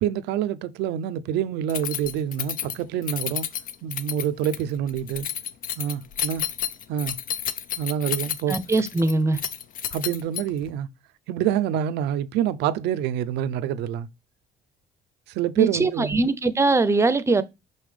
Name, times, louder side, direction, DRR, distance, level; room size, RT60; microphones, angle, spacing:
voice 1, 0.0-3.5 3.8-5.3 5.8-6.4 6.9-7.1 7.8-8.6 9.9-10.9 11.3-14.1 15.3-16.2, right 10 dB, 90° right, 0.6 m, -26 dB
Keys jangling, 1.7-10.7, left 9 dB, 55° left, 0.7 m, -31 dB
voice 2, 8.5-9.4 15.6-17.4, right 3 dB, 15° right, 0.7 m, -21 dB
5.7 x 5.4 x 3.3 m
cardioid pair, 110°, 17 cm